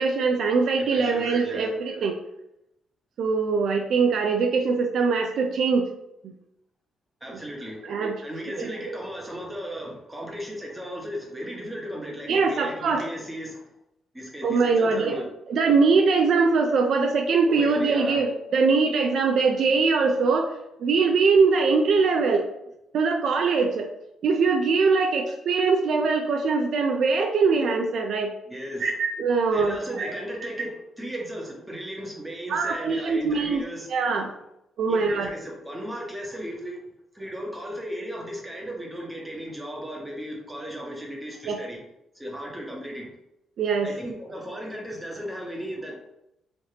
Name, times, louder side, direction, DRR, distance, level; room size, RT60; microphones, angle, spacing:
voice 1, 0.0-2.2 3.2-5.9 6.2-6.3 7.8-8.2 8.6-8.7 12.3-13.0 14.4-15.2 15.5-20.5 20.8-22.5 22.9-23.9 24.2-28.3 28.8-30.1 32.5-33.6 33.9-34.3 34.8-35.3 41.4-41.6 43.6-43.9, right 4 dB, 65° right, 4 dB, 0.3 m, -22 dB
voice 2, 0.8-1.8 7.2-7.8 8.2-13.7 14.1-15.3 17.4-18.2 28.5-28.9 29.5-33.9 34.9-36.8 37.1-41.8 42.1-43.1 43.8-46.1, equal, 10° right, -1 dB, 1.0 m, -36 dB
3.2 x 2.8 x 2.8 m, 0.83 s
cardioid pair, 90°, 0 cm